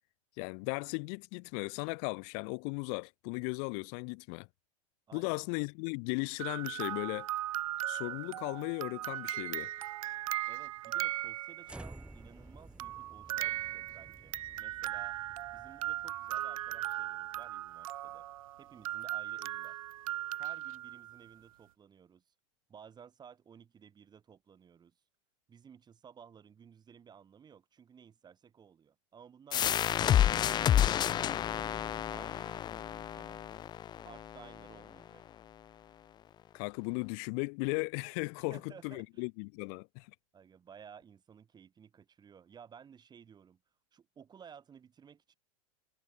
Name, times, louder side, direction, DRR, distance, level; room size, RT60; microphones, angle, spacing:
voice 1, 0.4-4.5 5.1-7.3 7.9-9.7 36.5-40.1, left 40 dB or more, 55° left, 2.0 m, -36 dB
voice 2, 5.1-5.5 10.4-15.2 15.5-18.3 18.6-19.8 20.4-22.2 22.7-24.9 25.5-30.6 31.0-33.5 34.0-35.2 38.5-39.3 40.3-43.6 43.9-45.3, right 7 dB, 25° right, 3.6 m, -56 dB
sound 1, 6.4-11.9 12.8-21.3, right 14 dB, 80° right, 0.7 m, -38 dB
sound 2, 11.6-18.0, right 2 dB, 5° right, 3.0 m, -53 dB
sound 3, 29.5-34.9, left 11 dB, 25° left, 0.4 m, -30 dB
hypercardioid pair, 110°, 17 cm